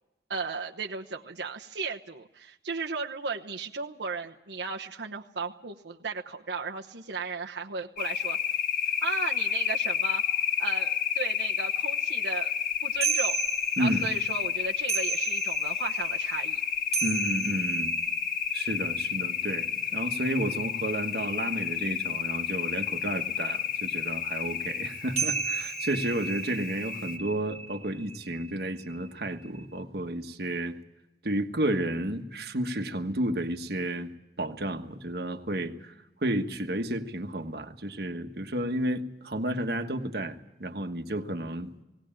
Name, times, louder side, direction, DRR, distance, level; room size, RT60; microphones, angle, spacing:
voice 1, 0.3-8.4 9.0-10.2 10.6-12.5 12.8-13.4 13.8-16.6, right 4 dB, 90° right, 1 dB, 1.1 m, -35 dB
sound 1, 8.0-27.2, left 8 dB, 45° left, 1.6 m, -31 dB
sound 2, 13.0-21.6 25.2-29.8, right 5 dB, 40° right, 1.3 m, -34 dB
voice 2, 13.8-14.1 17.0-17.9 18.5-30.8 31.2-34.1 34.4-35.9 36.2-41.7, right 1 dB, 65° right, 6 dB, 1.4 m, -31 dB
19.5 x 18.0 x 8.8 m, 0.94 s
head